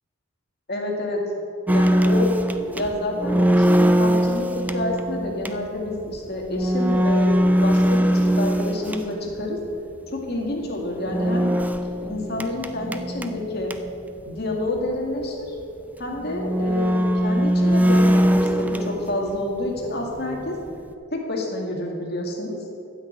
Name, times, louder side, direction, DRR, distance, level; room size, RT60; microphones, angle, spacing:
voice 1, 0.7-1.2 1.7-2.3 2.8-7.3 7.6-9.6 10.1-11.5 12.0-13.7 14.3-15.6 16.0-20.6 21.1-22.6, left 1 dB, 50° left, 0 dB, 2.0 m, -28 dB
sound 1, 1.7-9.5 11.0-14.1 14.4-14.5 14.8-14.9 15.6-15.7 16.3-19.5 19.8-20.9, equal, 10° right, 0.4 m, -21 dB
13.0 x 6.3 x 8.6 m, 2.7 s
head